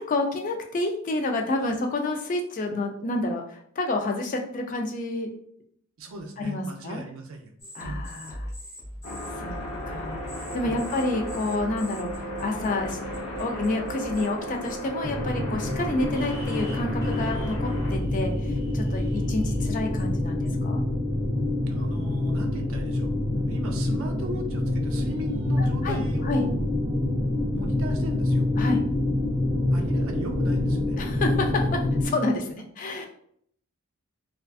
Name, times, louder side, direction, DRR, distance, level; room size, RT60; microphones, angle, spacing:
voice 1, 0.0-5.3 6.4-7.0 7.8-8.5 9.4-10.2 10.5-20.8 23.3-23.5 25.6-26.4 28.6-28.8 31.0-33.1, left 2 dB, 35° left, 3 dB, 0.3 m, -29 dB
voice 2, 6.0-7.5 7.8-8.1 9.3-9.4 10.6-10.9 18.9-19.2 21.6-26.7 27.5-28.5 29.7-31.0, right 2 dB, 65° right, 4 dB, 0.4 m, -38 dB
sound 1, 7.6-14.3 14.6-15.0 15.6-15.7 16.1-20.7, equal, 15° left, 0.8 m, -39 dB
sound 2, 9.0-18.0, equal, 75° left, 0.8 m, -35 dB
sound 3, 15.0-32.1, left 1 dB, 15° right, 1.0 m, -26 dB
2.4 x 2.3 x 2.3 m, 0.66 s
head